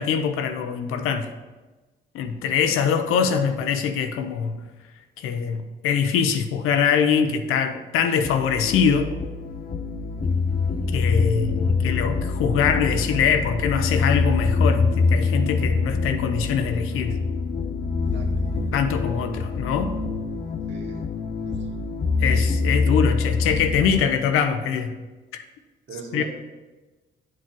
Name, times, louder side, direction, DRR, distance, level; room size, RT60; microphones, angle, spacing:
voice 1, 0.0-1.3 2.1-4.6 5.2-9.1 10.9-17.2 18.7-20.0 22.2-25.0 25.3-25.4 26.1-26.2, left 7 dB, 85° left, 8 dB, 0.7 m, -23 dB
sound 1, 8.2-24.0, left 4 dB, 45° left, 1.1 m, -24 dB
voice 2, 18.1-18.7 20.7-21.0 22.2-22.3 25.9-26.2, right 4 dB, 60° right, 0 dB, 1.9 m, -40 dB
9.6 x 4.8 x 4.5 m, 1.2 s
supercardioid pair, 65°, 21 cm